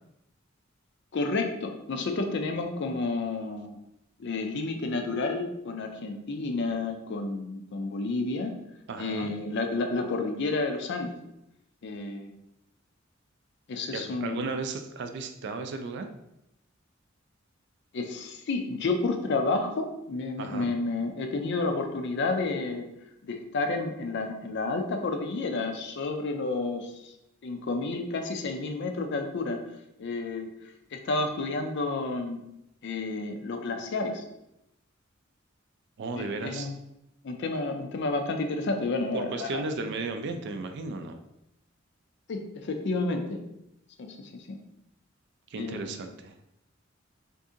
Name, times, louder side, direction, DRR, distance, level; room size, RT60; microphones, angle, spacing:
voice 1, 1.1-3.8 4.2-8.5 9.0-11.1 11.8-12.4 13.7-14.5 17.9-22.9 23.2-27.1 27.4-29.6 30.0-30.5 30.9-32.4 32.8-34.2 36.1-36.7 37.2-39.6 42.3-43.4 44.0-44.6 45.6-45.9, left 3 dB, 60° left, 5 dB, 0.4 m, -30 dB
voice 2, 8.9-9.3 13.9-16.1 20.4-20.7 36.0-36.7 39.1-41.2 45.5-46.3, right 3 dB, 60° right, 7 dB, 0.3 m, -34 dB
2.7 x 2.6 x 3.6 m, 0.84 s
head